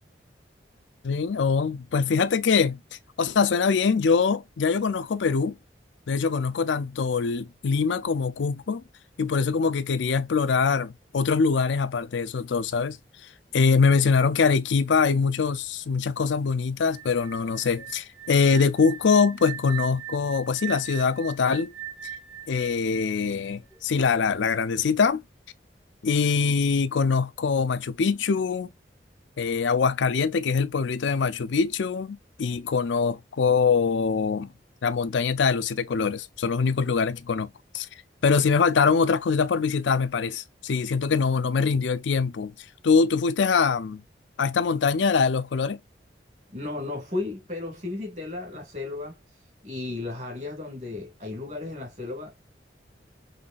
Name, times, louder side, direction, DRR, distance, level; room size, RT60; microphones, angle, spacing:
voice 1, 1.0-2.8 3.2-5.6 6.1-8.8 9.2-13.0 13.5-21.7 22.5-25.2 26.0-28.7 29.4-34.5 34.8-37.9 38.2-42.5 42.8-44.0 44.4-45.8, left 5 dB, 85° left, 0.5 m, -23 dB
sound 1, 16.9-23.8, right 10 dB, ahead, 0.5 m, -40 dB
voice 2, 46.5-49.2 49.6-52.3, left 2 dB, 40° right, 2.1 m, -34 dB
5.6 x 3.1 x 2.5 m
head